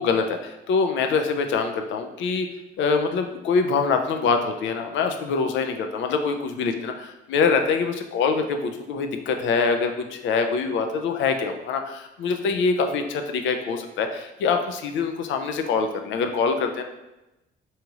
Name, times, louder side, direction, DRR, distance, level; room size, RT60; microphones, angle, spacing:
voice 1, 0.0-2.5 2.8-16.8, left 5 dB, 75° left, 6 dB, 0.4 m, -24 dB
2.8 x 2.3 x 2.9 m, 0.97 s
cardioid pair, 90°, 20 cm